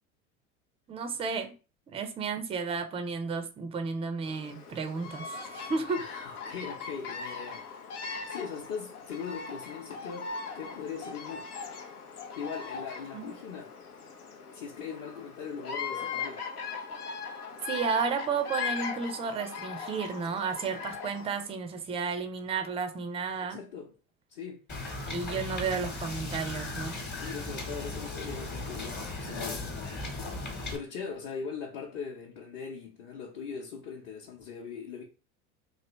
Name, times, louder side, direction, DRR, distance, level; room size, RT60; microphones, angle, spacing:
voice 1, 0.9-1.6 1.9-6.0 8.0-8.3 13.1-13.3 17.7-23.6 25.1-27.0, right 5 dB, 15° right, 0.3 m, -33 dB
Bird vocalization bird call bird song, 4.3-21.5, left 5 dB, 85° left, 0.6 m, -39 dB
voice 2, 5.9-7.9 8.3-11.5 12.4-13.7 14.5-16.5 23.5-24.0 24.3-24.6 27.2-29.7 30.7-35.0, left 6 dB, 45° left, 0.8 m, -40 dB
Wind / Boat Water vehicle, 24.7-30.8, left 2 dB, 25° left, 1.0 m, -37 dB
3.1 x 2.5 x 3.0 m
hypercardioid pair, 75°, 44 cm